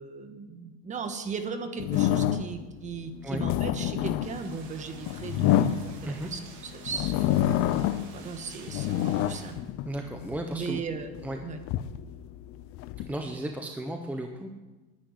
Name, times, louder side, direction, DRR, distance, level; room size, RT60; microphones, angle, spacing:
voice 1, 0.0-7.3 8.1-9.5 10.5-11.1 11.4-11.6, right 5 dB, 25° right, 7 dB, 1.4 m, -37 dB
sound 1, 1.8-2.7 3.2-6.4 6.9-8.2 8.5-10.4 11.0-13.1, left 11 dB, 45° left, 0.6 m, -27 dB
sound 2, 4.2-9.5, right 5 dB, 85° right, 3.4 m, -49 dB
voice 2, 9.8-10.8 11.2-11.4 13.0-14.5, right 1 dB, 5° right, 3 dB, 0.8 m, -34 dB
10.5 x 9.0 x 9.7 m, 1.2 s
cardioid pair, 150°, 31 cm